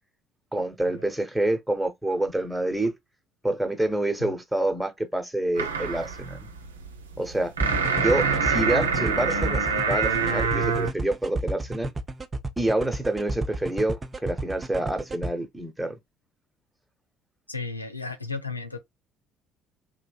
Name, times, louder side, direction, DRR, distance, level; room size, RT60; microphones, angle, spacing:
voice 1, 0.5-3.0 3.4-6.5 7.2-7.5 7.9-11.9 12.6-16.0, right 1 dB, 5° right, 1.0 m, -27 dB
sound 1, 5.6-10.9, right 5 dB, 80° right, 0.5 m, -26 dB
sound 2, 7.6-15.3, right 2 dB, 25° right, 0.5 m, -31 dB
voice 2, 17.5-18.8, left 3 dB, 90° left, 0.5 m, -34 dB
3.5 x 3.1 x 2.3 m
figure-of-eight pair, 55°, 0 cm